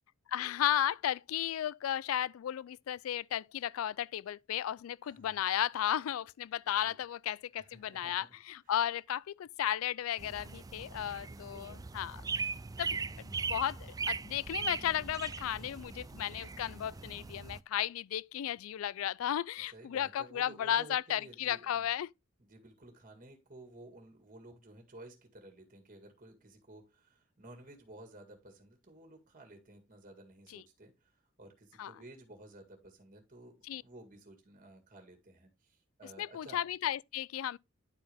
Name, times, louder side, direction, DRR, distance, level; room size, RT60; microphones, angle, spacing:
voice 1, 0.3-12.2 12.8-22.1 30.5-30.6 31.8-31.9 33.6-33.8 36.2-37.6, left 10 dB, 85° left, 0.3 m, -34 dB
voice 2, 5.0-5.4 6.8-7.0 7.6-8.3 8.7-8.8 11.2-11.8 19.7-21.8 22.4-36.6, right 1 dB, 40° right, 2.1 m, -54 dB
sound 1, 10.2-17.6, right 5 dB, 20° right, 0.3 m, -40 dB
10.5 x 4.7 x 3.4 m
head